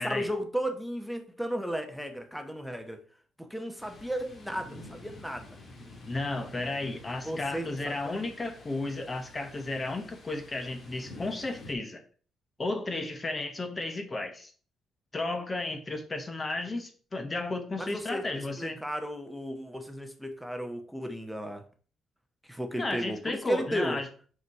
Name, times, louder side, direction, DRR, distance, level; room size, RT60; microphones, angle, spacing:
voice 1, 0.0-3.0 3.5-5.6 7.2-8.2 17.8-21.6 22.5-24.0, equal, ahead, 6 dB, 1.0 m, -34 dB
Thunder, 3.8-11.7, left 2 dB, 45° left, 1.7 m, -49 dB
voice 2, 6.1-12.0 12.6-14.5 15.1-18.8 22.8-24.1, left 2 dB, 30° left, 6 dB, 1.0 m, -33 dB
5.5 x 4.8 x 4.7 m, 0.42 s
cardioid pair, 90°, 0 cm